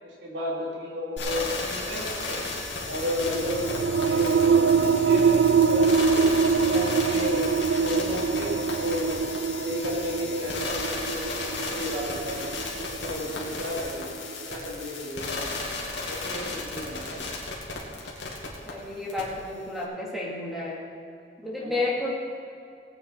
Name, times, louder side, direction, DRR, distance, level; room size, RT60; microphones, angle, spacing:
voice 1, 0.0-2.4 2.8-6.2 6.6-7.5 7.7-9.3 9.6-12.5 12.8-15.5 16.1-17.2 21.6-21.9, left 1 dB, 85° right, -4 dB, 3.5 m, -33 dB
sound 1, 1.2-18.7 19.1-19.2, left 3 dB, 90° left, 2.4 m, -34 dB
sound 2, 3.2-14.5, right 5 dB, 70° right, 0.3 m, -24 dB
voice 2, 18.7-20.8 21.4-22.1, left 2 dB, ahead, -5 dB, 2.5 m, -31 dB
18.5 x 8.9 x 4.6 m, 2.5 s
head